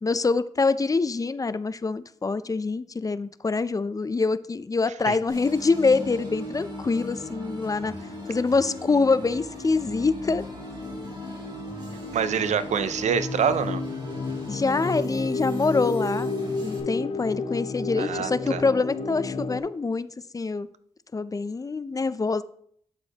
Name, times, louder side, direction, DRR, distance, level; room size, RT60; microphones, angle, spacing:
voice 1, 0.0-7.9 8.3-10.4 14.5-16.3 16.6-20.1 20.3-20.7 21.1-22.4, left 4 dB, 30° left, 15 dB, 0.4 m, -25 dB
sound 1, 5.3-19.6, left 3 dB, 50° left, 0.8 m, -33 dB
sound 2, 5.3-16.8, right 1 dB, 40° right, 2.2 m, -44 dB
voice 2, 12.1-13.8 18.0-18.6, right 7 dB, 80° right, 13 dB, 0.5 m, -26 dB
8.9 x 6.8 x 2.9 m, 0.63 s
cardioid pair, 65°, 12 cm